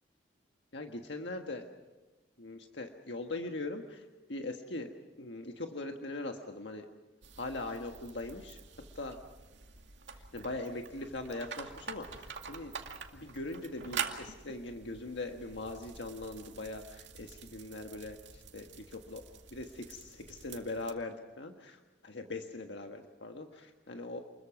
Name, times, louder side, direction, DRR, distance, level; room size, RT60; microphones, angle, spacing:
voice 1, 0.7-1.7 2.4-4.0 4.3-6.8 7.4-8.6 8.9-9.2 10.1-12.7 13.1-19.2 19.5-24.2, left 2 dB, 75° left, 4 dB, 1.6 m, -41 dB
sound 1, 7.2-20.9, right 6 dB, 80° right, 2.2 m, -46 dB
28.5 x 21.5 x 6.0 m, 1.2 s
head